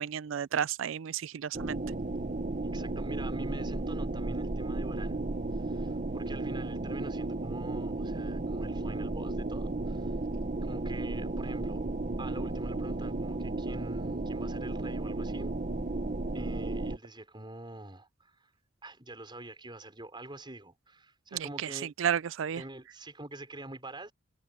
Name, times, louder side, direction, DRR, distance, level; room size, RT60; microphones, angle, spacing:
voice 1, 0.0-1.8 21.3-21.7 22.0-22.6, right 8 dB, 70° right, 0.4 m, -32 dB
sound 1, 1.5-17.0, right 2 dB, 40° right, 0.8 m, -34 dB
voice 2, 2.7-5.2 5.5-10.2 10.6-11.8 12.2-15.5 16.3-18.5 18.8-21.9 22.5-24.1, right 1 dB, 25° right, 5.5 m, -45 dB
head